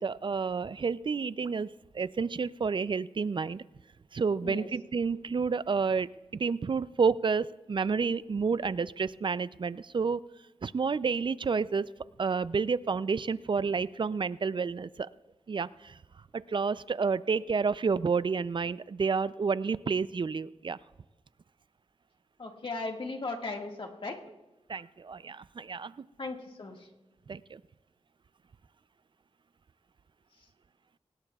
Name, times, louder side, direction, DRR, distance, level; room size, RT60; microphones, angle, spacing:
voice 1, 0.0-3.6 4.1-10.2 10.6-11.9 12.2-15.1 15.5-16.0 16.3-20.8 24.7-26.1 27.3-27.6, right 5 dB, 45° right, 16 dB, 0.4 m, -30 dB
voice 2, 22.4-24.2 26.2-26.9, left 3 dB, 50° left, 2 dB, 1.8 m, -37 dB
23.5 x 18.5 x 2.4 m, 1.1 s
wide cardioid pair, 80°, 11 cm